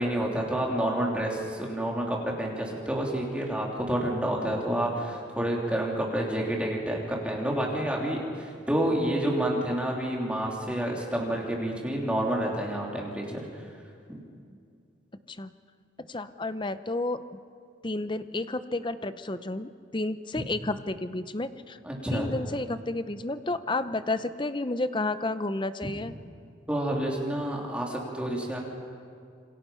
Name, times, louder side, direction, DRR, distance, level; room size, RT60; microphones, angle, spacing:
voice 1, 0.0-13.6 14.1-14.2 20.3-20.4 21.8-22.3 25.8-25.9 26.7-28.6, right 1 dB, 5° right, -2 dB, 3.2 m, -29 dB
voice 2, 16.0-17.2 17.8-21.8 22.1-26.1, left 2 dB, 25° left, 12 dB, 0.7 m, -31 dB
27.0 x 25.0 x 5.7 m, 2.3 s
head